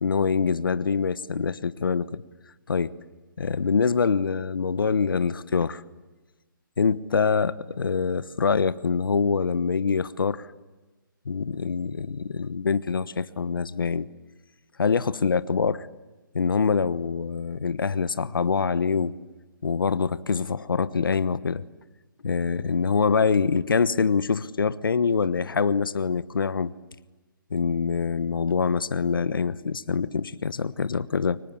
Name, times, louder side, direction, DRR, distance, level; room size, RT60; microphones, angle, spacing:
voice 1, 0.0-2.2 2.7-2.9 3.4-5.8 6.8-10.5 11.2-14.1 14.8-15.9 16.3-19.2 19.6-21.6 22.2-26.7 27.5-31.4, left 5 dB, 75° left, 15 dB, 1.1 m, -25 dB
30.0 x 24.5 x 7.3 m, 1.2 s
hypercardioid pair, 155°, 11 cm